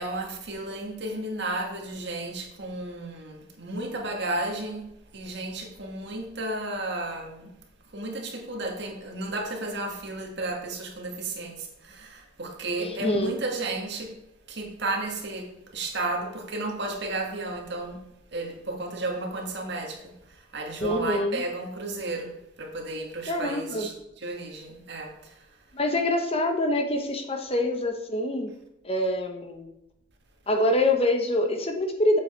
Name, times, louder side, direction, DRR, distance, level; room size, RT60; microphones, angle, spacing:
voice 1, 0.0-4.9 5.1-7.5 7.9-14.2 14.5-18.0 18.3-25.5, right 2 dB, 60° right, 1.9 m, -33 dB
voice 2, 12.8-13.3 20.8-21.4 23.3-23.9 25.7-28.5 28.8-29.7 30.5-32.2, left 1 dB, 30° left, 1.0 m, -25 dB
7.8 x 7.5 x 4.5 m
head